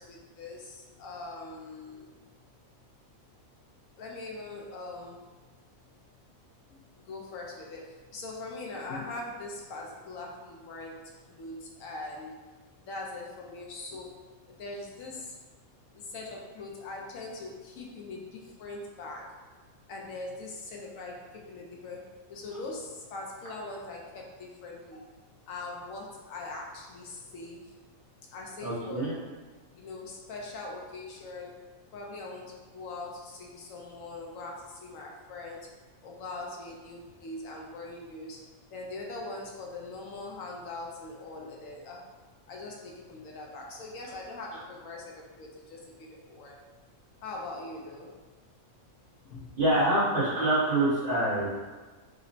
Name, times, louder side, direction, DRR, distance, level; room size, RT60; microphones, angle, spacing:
voice 1, 0.0-2.1 4.0-5.2 7.1-12.4 12.8-15.4 15.9-19.4 19.9-25.0 25.5-27.7 28.3-29.2 29.7-31.6 31.9-35.7 36.0-42.1 42.5-46.7 47.2-48.1 49.3-49.4 50.2-50.3, left 2 dB, 75° left, -1 dB, 1.0 m, -42 dB
voice 2, 28.6-29.1 44.5-44.6 49.6-51.5, right 1 dB, 45° right, -8 dB, 1.0 m, -26 dB
5.0 x 2.0 x 2.6 m, 1.3 s
omnidirectional pair, 1.5 m